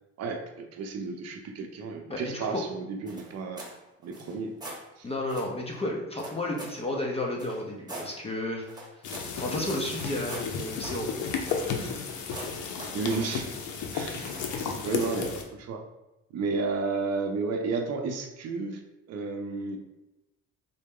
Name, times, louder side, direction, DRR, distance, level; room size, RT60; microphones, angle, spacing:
voice 1, 0.2-3.6 4.0-4.5 5.0-5.1 12.9-15.8 16.3-18.8 19.1-19.8, right 4 dB, 60° right, 3 dB, 0.6 m, -32 dB
voice 2, 2.1-2.6 5.0-8.7 9.4-11.9 12.3-12.6, left 1 dB, 20° left, -1 dB, 0.5 m, -33 dB
sound 1, 3.1-3.8 4.1-4.8 5.3-5.5 6.2-6.8 7.4-8.1 8.7-12.0 12.3-13.3 14.2-14.6 15.0-15.3, right 1 dB, 15° right, 1.0 m, -42 dB
sound 2, 9.0-15.4, left 6 dB, 80° left, 0.6 m, -33 dB
3.8 x 2.1 x 3.6 m, 0.98 s
cardioid pair, 105°, 30 cm